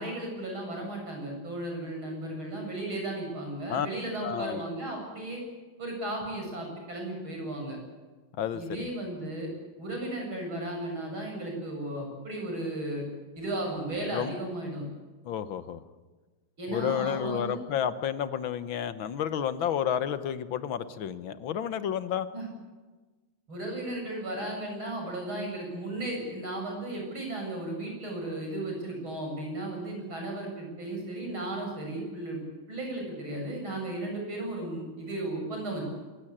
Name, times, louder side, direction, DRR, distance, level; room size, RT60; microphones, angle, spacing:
voice 1, 0.0-5.4 5.8-7.8 8.5-9.5 9.8-13.0 13.4-14.8 16.6-17.6 22.3-22.4 23.5-32.4 32.7-35.9, right 1 dB, 90° right, 1 dB, 8.0 m, -35 dB
voice 2, 4.2-4.6 8.4-8.9 14.1-14.3 15.3-15.8 16.7-22.3, left 9 dB, 75° left, 13 dB, 1.9 m, -31 dB
26.5 x 16.5 x 8.8 m, 1.3 s
omnidirectional pair, 2.2 m